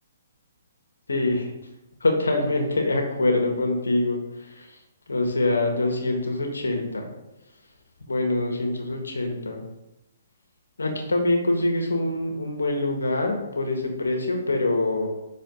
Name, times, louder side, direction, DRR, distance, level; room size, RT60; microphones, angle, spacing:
voice 1, 1.1-1.5 2.0-4.8 5.1-7.1 8.1-9.6 10.8-15.1, left 2 dB, 90° left, 2 dB, 1.5 m, -25 dB
5.8 x 5.0 x 5.2 m, 0.92 s
hypercardioid pair, 140°, 0 cm